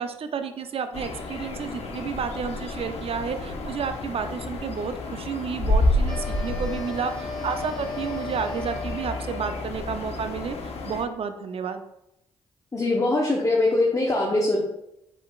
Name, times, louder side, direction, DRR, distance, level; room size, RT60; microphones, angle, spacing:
voice 1, 0.0-11.8, right 6 dB, 50° right, 8 dB, 0.5 m, -31 dB
sound 1, 0.9-11.0, left 2 dB, 55° left, 0.8 m, -30 dB
sound 2, 6.1-9.6, left 3 dB, 5° left, 1.6 m, -37 dB
voice 2, 12.7-14.6, left 2 dB, 25° left, -2 dB, 1.0 m, -22 dB
4.7 x 4.0 x 2.4 m, 0.82 s
hypercardioid pair, 50°, 12 cm